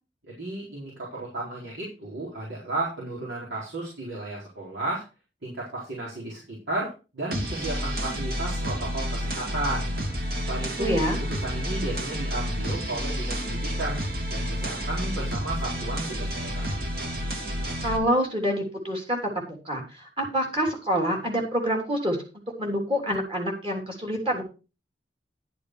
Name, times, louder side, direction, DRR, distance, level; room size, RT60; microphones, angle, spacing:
voice 1, 0.3-5.0 5.4-9.9 10.5-11.0 11.3-14.0 14.3-16.6, right 2 dB, 90° right, -5 dB, 4.2 m, -33 dB
sound 1, 7.3-18.0, equal, 55° right, 2.4 m, -30 dB
voice 2, 10.8-11.2 17.8-19.2 19.6-22.2 22.6-24.4, equal, 30° right, 1 dB, 3.2 m, -26 dB
11.5 x 7.0 x 4.8 m, 0.32 s
head